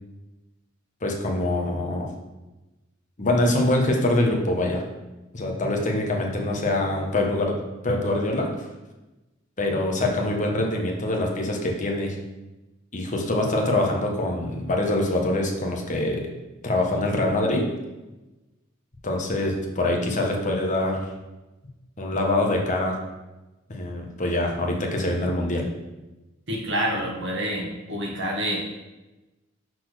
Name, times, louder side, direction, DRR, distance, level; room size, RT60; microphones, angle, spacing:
voice 1, 1.0-2.1 3.2-4.8 5.3-7.6 7.8-8.5 9.6-12.2 12.9-16.3 16.6-17.7 19.0-21.0 22.0-23.0 23.7-25.7, left 1 dB, 40° left, 1 dB, 1.2 m, -24 dB
voice 2, 26.5-28.6, equal, 65° right, -2 dB, 1.7 m, -27 dB
6.1 x 4.2 x 6.3 m, 1.1 s
head